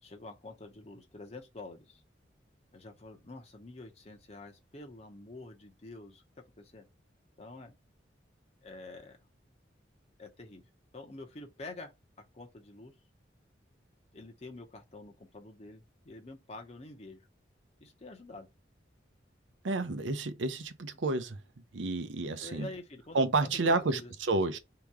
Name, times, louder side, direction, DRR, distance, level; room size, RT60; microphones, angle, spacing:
voice 1, 0.0-2.0 2.7-6.9 7.4-7.8 8.6-9.2 10.2-10.6 10.9-11.9 12.3-12.9 14.1-17.2 17.8-18.5 22.4-24.1 24.5-24.6, left 2 dB, 35° left, 0.8 m, -47 dB
voice 2, 19.6-21.4 21.7-22.7 23.1-24.6, right 3 dB, 85° right, 0.7 m, -30 dB
3.5 x 2.9 x 4.7 m
head